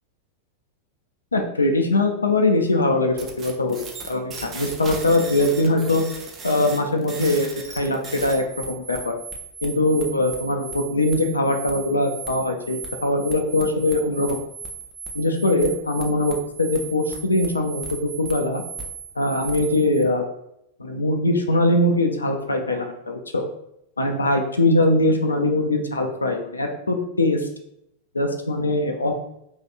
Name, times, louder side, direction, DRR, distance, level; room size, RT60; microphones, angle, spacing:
voice 1, 1.3-3.8 4.1-6.0 6.4-9.1 9.6-14.4 15.1-18.6 19.2-20.2 20.8-23.4 24.0-27.5 28.1-29.1, left 2 dB, 75° left, 4 dB, 0.3 m, -22 dB
sound 1, 3.2-20.0, right 5 dB, 25° right, 0.6 m, -37 dB
3.1 x 2.7 x 2.5 m, 0.79 s
figure-of-eight pair, 90°, 0 cm